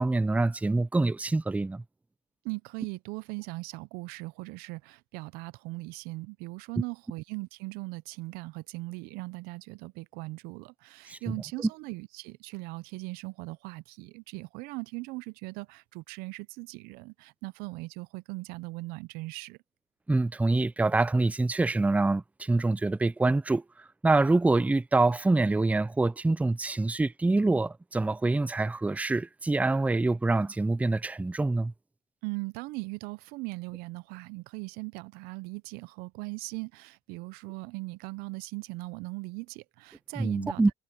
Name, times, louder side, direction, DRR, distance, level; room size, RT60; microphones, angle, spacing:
voice 1, 0.0-1.8 11.1-11.3 11.6-11.7 20.1-23.6 24.0-31.7 40.2-40.7, right 2 dB, 10° right, 0.6 m, -25 dB
voice 2, 2.4-19.6 32.2-40.6, right 24 dB, 70° right, 0.7 m, -39 dB
supercardioid pair, 80°, 16 cm